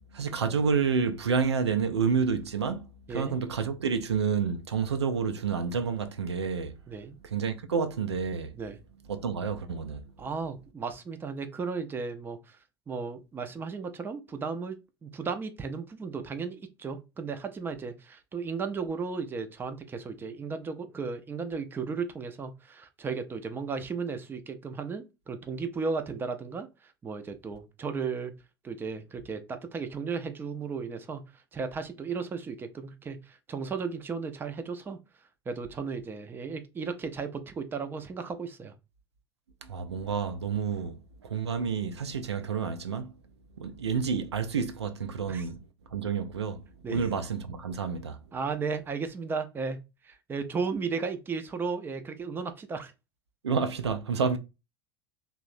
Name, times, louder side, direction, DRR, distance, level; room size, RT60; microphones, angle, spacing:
voice 1, 0.1-6.7 7.2-8.5 9.1-10.0 39.6-43.1 43.6-45.6 45.9-46.6 46.9-48.2 53.4-54.4, right 6 dB, 80° right, 0.4 m, -29 dB
voice 2, 6.9-7.2 8.6-8.8 10.2-12.6 12.9-26.7 27.0-28.3 28.6-31.2 31.5-35.0 35.5-38.7 45.3-45.4 46.8-47.0 48.3-49.8 50.0-52.9, right 5 dB, 15° right, 0.4 m, -35 dB
3.0 x 2.1 x 2.5 m
figure-of-eight pair, 80°, 14 cm